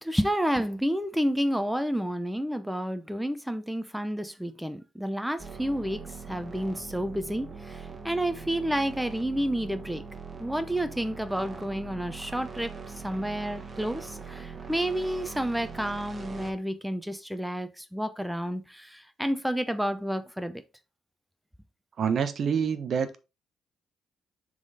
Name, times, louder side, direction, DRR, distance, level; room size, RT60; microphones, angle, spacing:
voice 1, 0.0-10.0 10.4-20.6, equal, 5° right, 0.6 m, -30 dB
sound 1, 5.4-16.5, right 5 dB, 30° right, 1.4 m, -42 dB
voice 2, 22.0-23.2, right 7 dB, 55° right, 0.9 m, -26 dB
6.8 x 3.8 x 4.0 m
cardioid pair, 90°, 0 cm